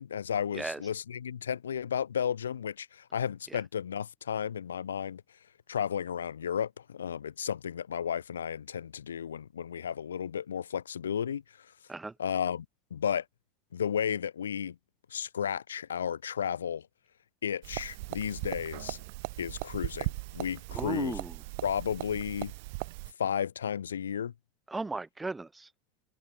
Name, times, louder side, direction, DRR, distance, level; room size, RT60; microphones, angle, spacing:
voice 1, 0.0-5.2 5.7-11.4 12.2-12.7 12.9-13.2 13.7-14.8 15.1-16.9 17.4-19.0 19.4-21.2 21.6-22.5 23.2-24.3, left 8 dB, 85° left, 2.3 m, -33 dB
sound 1, 17.6-23.1, right 26 dB, 65° right, 3.5 m, -38 dB
voice 2, 20.7-21.4 24.7-25.7, right 3 dB, 15° right, 2.8 m, -36 dB
hypercardioid pair, 80°, 0 cm